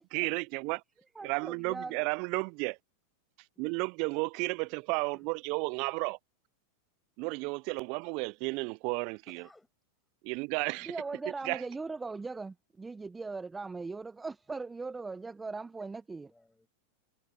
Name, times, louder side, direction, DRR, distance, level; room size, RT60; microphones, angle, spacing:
voice 1, 0.1-0.8 1.2-2.8 3.6-6.2 7.2-9.2 10.2-10.9 11.4-11.6, right 31 dB, 50° right, 0.4 m, -33 dB
voice 2, 1.1-2.0 10.8-16.3, right 3 dB, 15° right, 1.0 m, -39 dB
voice 3, 9.3-9.7 10.6-11.0 16.3-16.7, left 2 dB, 5° left, 7.6 m, -61 dB
hypercardioid pair, 95°, 0 cm